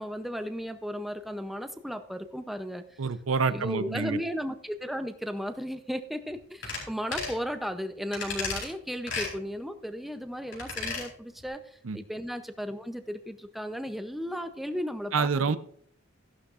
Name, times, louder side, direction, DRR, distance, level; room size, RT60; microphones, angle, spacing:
voice 1, 0.0-2.8 3.5-15.6, equal, ahead, 8 dB, 0.6 m, -35 dB
voice 2, 3.0-4.2 11.8-12.0 15.1-15.6, right 5 dB, 90° right, 13 dB, 0.6 m, -27 dB
sound 1, 6.6-6.8 7.1-7.4 8.1-8.7 9.1-9.3 10.5-11.1 11.4-11.5, left 4 dB, 65° left, 4.0 m, -33 dB
14.5 x 11.5 x 2.5 m, 0.62 s
head